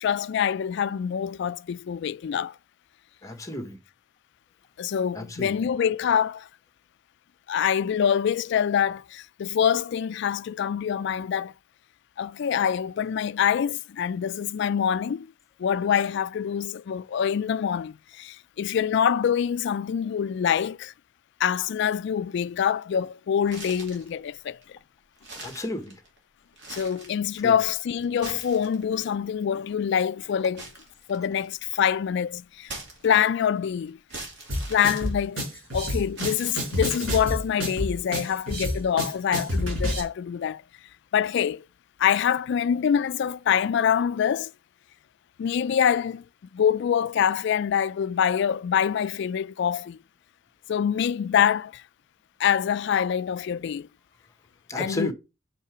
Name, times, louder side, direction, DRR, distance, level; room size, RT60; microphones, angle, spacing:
voice 1, 0.0-2.5 4.8-6.5 7.5-11.5 12.2-15.3 15.6-20.9 21.4-24.6 26.7-30.7 31.1-32.7 33.0-34.0 34.7-35.4 35.7-40.6 41.1-41.7 42.0-44.5 45.4-46.2 46.5-50.0 50.7-51.8 52.4-53.9 54.8-55.1, left 8 dB, 60° left, 0.3 m, -25 dB
voice 2, 3.2-3.8 5.1-5.5 25.4-25.9 27.4-27.5 54.7-55.1, left 1 dB, 15° left, 1.2 m, -32 dB
sound 1, 23.4-24.1 24.6-24.7 25.2-26.2 26.5-27.2 28.0-29.1 30.6-31.6 32.6-33.5 34.1-35.7 36.1-37.1, right 2 dB, 60° right, 2.9 m, -42 dB
sound 2, 34.5-40.0, equal, 75° right, 4.5 m, -29 dB
5.8 x 5.5 x 6.0 m
head